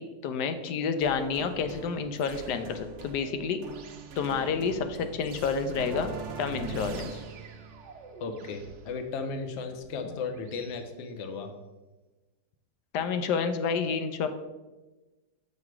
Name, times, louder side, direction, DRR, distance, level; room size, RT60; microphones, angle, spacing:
voice 1, 0.0-3.6 4.2-6.1 6.4-7.2 12.9-14.3, left 5 dB, 80° left, 9 dB, 1.1 m, -29 dB
sound 1, 1.0-10.7, right 4 dB, 60° right, 0.8 m, -43 dB
voice 2, 8.2-11.5, left 4 dB, 60° left, 6 dB, 0.8 m, -35 dB
7.1 x 3.2 x 5.9 m, 1.2 s
omnidirectional pair, 1.8 m